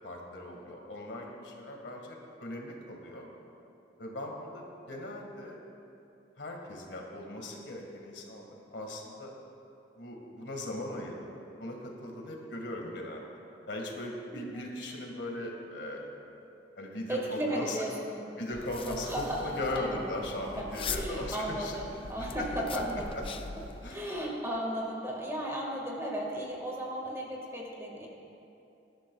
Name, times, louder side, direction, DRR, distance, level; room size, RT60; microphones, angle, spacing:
voice 1, 0.0-3.3 4.0-5.6 6.4-9.3 10.0-11.3 11.6-13.2 13.7-16.2 16.8-17.9 18.4-19.1 19.4-21.7 22.4-22.8 23.8-24.1, left 1 dB, 80° left, 0 dB, 1.8 m, -39 dB
voice 2, 17.1-18.2 18.7-20.1 20.6-23.0 23.9-28.1, right 1 dB, 15° right, -2 dB, 1.8 m, -35 dB
sound 1, 18.5-24.0, left 4 dB, 30° left, 0.5 m, -41 dB
20.5 x 11.5 x 2.3 m, 2.8 s
head